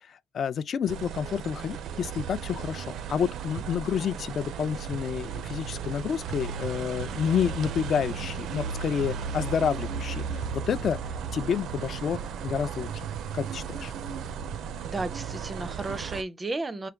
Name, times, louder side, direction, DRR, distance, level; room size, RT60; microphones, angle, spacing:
voice 1, 0.3-11.0 11.3-13.0 13.3-13.9, left 7 dB, 50° left, 0.3 m, -29 dB
sound 1, 0.9-16.2, right 6 dB, 85° right, 0.5 m, -35 dB
voice 2, 14.8-16.9, right 2 dB, 20° right, 0.4 m, -33 dB
4.7 x 2.2 x 3.3 m
cardioid pair, 170°, 0 cm